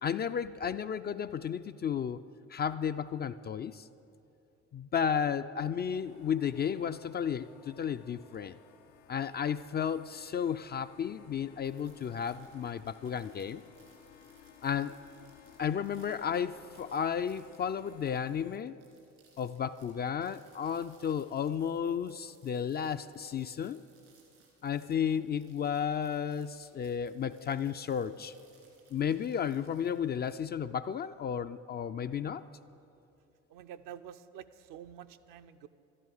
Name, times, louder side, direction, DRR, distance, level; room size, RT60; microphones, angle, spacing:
voice 1, 0.0-2.2 2.5-3.9 4.7-8.5 9.1-13.6 14.6-15.0 15.6-18.8 19.4-23.8 24.6-28.3 28.9-32.4, left 8 dB, 30° left, 11 dB, 0.4 m, -33 dB
sound 1, 5.9-18.6, left 8 dB, 75° left, 0.8 m, -58 dB
sound 2, 11.6-30.6, right 5 dB, 85° right, 2.9 m, -66 dB
voice 2, 33.5-35.7, right 10 dB, 65° right, 10 dB, 0.6 m, -48 dB
12.5 x 11.0 x 6.4 m, 2.6 s
hypercardioid pair, 60°, 36 cm